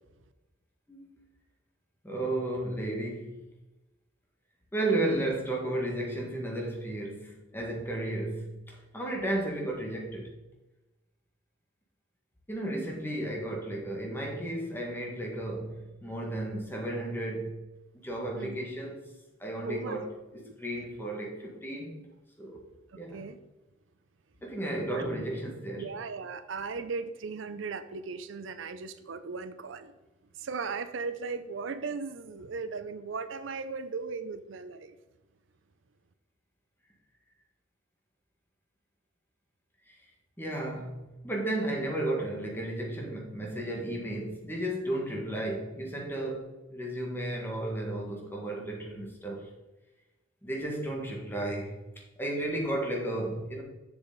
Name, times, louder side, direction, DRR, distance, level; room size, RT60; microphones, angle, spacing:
voice 1, 2.0-3.3 4.7-10.3 12.5-17.6 18.0-19.1 19.4-22.1 22.4-22.6 23.0-23.2 24.4-25.9 40.4-41.0 41.2-49.5 50.4-51.8 52.2-53.6, right 1 dB, 10° left, 0 dB, 1.8 m, -33 dB
voice 2, 19.6-20.1 20.5-20.6 23.1-23.4 24.9-25.0 25.8-29.9 30.4-35.0, right 4 dB, 75° right, 11 dB, 0.5 m, -37 dB
7.1 x 7.0 x 4.0 m, 1.0 s
head